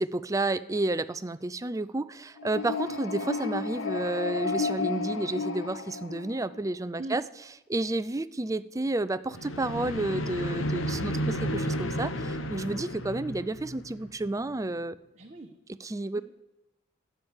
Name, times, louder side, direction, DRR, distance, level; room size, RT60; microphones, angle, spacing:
voice 1, 0.0-7.2 7.7-15.0 15.7-16.2, right 2 dB, 15° right, 15 dB, 0.4 m, -31 dB
sound 1, 2.4-6.7 9.3-14.3, left 2 dB, 70° left, 1.3 m, -32 dB
voice 2, 10.9-11.3 15.2-15.5 16.2-16.3, right 2 dB, 35° right, 1 dB, 1.1 m, -40 dB
13.0 x 8.2 x 9.9 m, 0.92 s
head